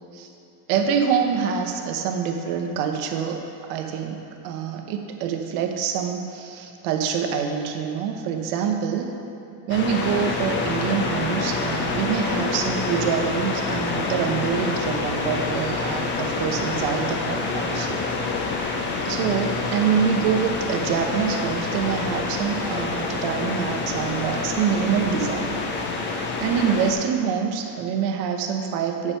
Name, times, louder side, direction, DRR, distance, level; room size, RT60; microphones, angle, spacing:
voice 1, 0.7-9.1 9.7-18.0 19.0-25.5 26.4-29.1, right 7 dB, 80° right, 3 dB, 1.0 m, -25 dB
sound 1, 9.7-26.9, left 4 dB, 25° left, 0.4 m, -27 dB
8.6 x 4.8 x 5.6 m, 2.8 s
cardioid pair, 170°, 46 cm